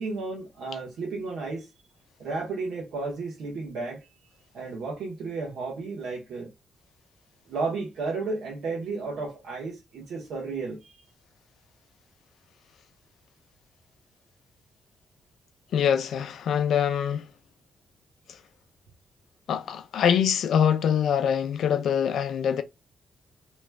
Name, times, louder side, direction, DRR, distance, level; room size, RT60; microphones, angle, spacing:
voice 1, 0.0-1.7 2.2-4.1 4.5-6.5 7.5-11.0, right 3 dB, 80° right, 1.1 m, -33 dB
voice 2, 15.7-17.3 19.5-22.6, left 8 dB, 75° left, 0.4 m, -24 dB
3.4 x 3.0 x 2.2 m
cardioid pair, 130°, 0 cm